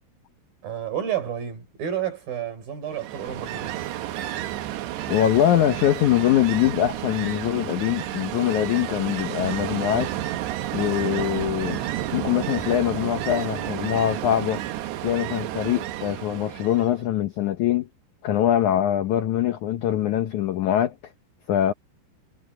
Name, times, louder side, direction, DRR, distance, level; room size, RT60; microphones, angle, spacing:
voice 1, 0.6-3.8, right 9 dB, 55° right, 6.0 m, -30 dB
Ocean, 2.9-17.0, right 13 dB, 80° right, 3.3 m, -31 dB
voice 2, 5.1-10.1 10.7-11.8 12.1-14.6 15.0-17.9 18.2-20.9 21.5-21.7, left 11 dB, 85° left, 1.7 m, -23 dB
omnidirectional pair, 5.0 m